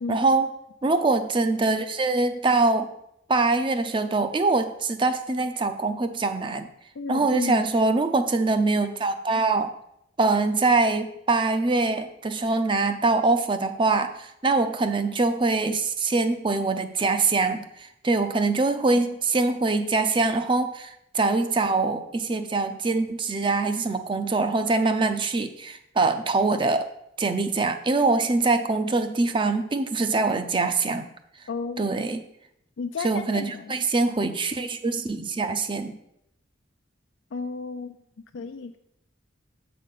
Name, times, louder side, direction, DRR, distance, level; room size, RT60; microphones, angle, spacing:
voice 1, 0.1-0.5 0.8-2.9 3.3-6.7 7.1-9.7 10.2-26.9 27.2-31.0 31.8-32.2 33.0-35.9, right 3 dB, 25° right, 9 dB, 0.5 m, -23 dB
voice 2, 7.0-7.7 31.5-31.9 32.8-33.8 37.3-38.0 38.3-38.8, left 4 dB, 90° left, 6 dB, 0.4 m, -33 dB
7.4 x 3.9 x 6.6 m, 0.77 s
head